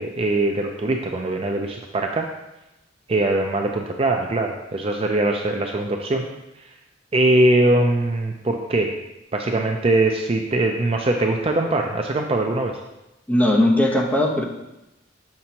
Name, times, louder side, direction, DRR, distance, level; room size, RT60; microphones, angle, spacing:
voice 1, 0.0-2.3 3.1-6.3 7.1-9.0 9.3-12.8, right 2 dB, 30° right, 3 dB, 0.4 m, -21 dB
voice 2, 13.3-14.4, left 1 dB, 10° left, -2 dB, 0.8 m, -18 dB
6.3 x 5.8 x 2.8 m, 0.94 s
head